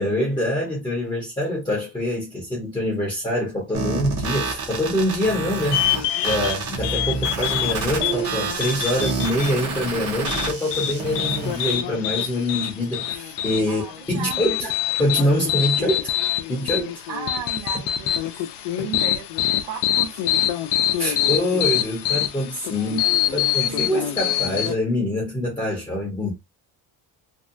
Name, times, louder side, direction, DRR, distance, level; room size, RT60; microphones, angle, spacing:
voice 1, 0.0-5.9 6.2-13.8 14.1-14.7 15.0-16.1 16.5-17.1 18.8-18.9 21.0-23.1 23.3-26.3, left 1 dB, 10° left, 0.6 m, -25 dB
sound 1, 3.7-11.7, right 4 dB, 35° right, 0.6 m, -29 dB
sound 2, 5.7-24.7, left 11 dB, 70° left, 0.5 m, -25 dB
voice 2, 13.7-14.6 17.1-18.3 18.8-19.2 19.6-20.4 22.8-23.4 23.7-23.9, right 7 dB, 70° right, 0.9 m, -35 dB
2.6 x 2.1 x 2.5 m
cardioid pair, 160°, 44 cm